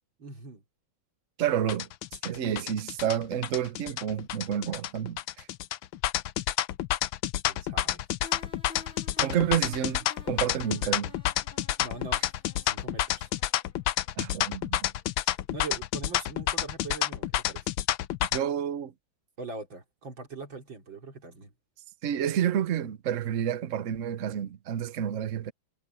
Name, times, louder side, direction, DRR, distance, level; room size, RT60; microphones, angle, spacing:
voice 1, 0.2-0.6 7.5-8.0 11.8-12.2 12.6-13.3 15.2-17.7 19.4-21.5, right 3 dB, 70° right, 3.8 m, -42 dB
voice 2, 1.4-1.9 2.2-5.5 9.2-11.1 14.2-14.9 18.3-18.9 22.0-25.5, right 9 dB, 50° right, 1.1 m, -29 dB
sound 1, 1.7-18.4, left 13 dB, 80° left, 1.5 m, -29 dB
sound 2, 8.2-15.0, left 3 dB, 25° left, 5.3 m, -52 dB
omnidirectional pair, 2.2 m